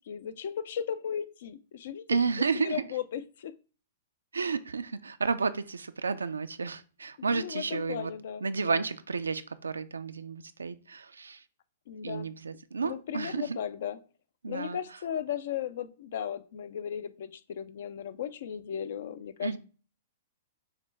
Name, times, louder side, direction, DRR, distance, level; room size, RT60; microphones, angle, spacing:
voice 1, 0.1-2.0 2.5-3.5 7.3-8.8 11.9-12.3 12.8-14.0 14.5-19.6, left 9 dB, 65° left, 0.4 m, -36 dB
voice 2, 2.1-2.8 4.3-8.1 8.4-11.4 12.0-13.6 14.4-14.8 19.4-19.6, right 5 dB, 90° right, 0.3 m, -31 dB
6.4 x 2.2 x 3.3 m
hypercardioid pair, 115°, 0 cm